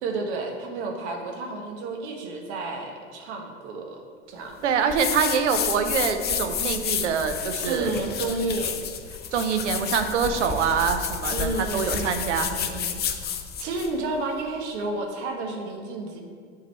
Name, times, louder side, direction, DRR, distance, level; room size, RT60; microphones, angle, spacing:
voice 1, 0.0-4.0 4.3-4.6 7.7-8.8 11.3-13.3 13.6-16.2, right 3 dB, 70° right, 3 dB, 1.1 m, -31 dB
voice 2, 4.6-7.9 9.3-12.5, right 6 dB, 85° right, 7 dB, 0.7 m, -25 dB
sound 1, 4.9-13.9, left 7 dB, 30° left, 0.6 m, -30 dB
7.4 x 3.9 x 4.3 m, 2.1 s
hypercardioid pair, 85°, 35 cm